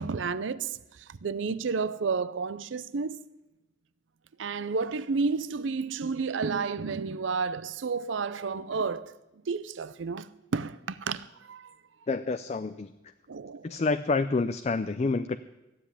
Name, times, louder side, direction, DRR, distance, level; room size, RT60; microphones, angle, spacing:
voice 1, 0.0-3.2 4.4-9.1 9.5-11.7 13.3-13.7, right 4 dB, 75° right, 0.5 m, -31 dB
voice 2, 12.1-12.9 13.6-15.4, left 3 dB, 35° left, 0.4 m, -28 dB
15.0 x 7.6 x 9.8 m
head